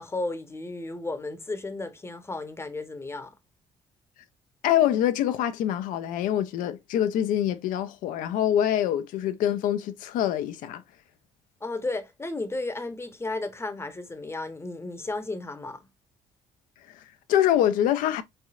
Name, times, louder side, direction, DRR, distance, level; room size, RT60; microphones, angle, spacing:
voice 1, 0.0-3.3 11.6-15.9, left 2 dB, 20° left, 0.7 m, -34 dB
voice 2, 4.6-10.8 16.8-18.2, left 11 dB, 80° left, 0.4 m, -25 dB
3.5 x 3.2 x 2.3 m
supercardioid pair, 65°, 14 cm